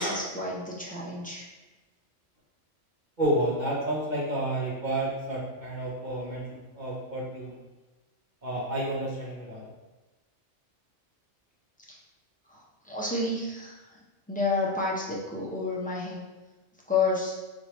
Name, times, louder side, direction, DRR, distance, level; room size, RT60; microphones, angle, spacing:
voice 1, 0.0-1.5 11.9-12.0 12.5-13.8 14.3-16.2 16.9-17.3, left 3 dB, 10° left, -5 dB, 0.5 m, -30 dB
voice 2, 3.2-6.5 6.7-7.5 8.4-9.6, right 1 dB, 40° right, -7 dB, 1.3 m, -30 dB
4.1 x 3.3 x 3.0 m, 1.2 s
omnidirectional pair, 1.2 m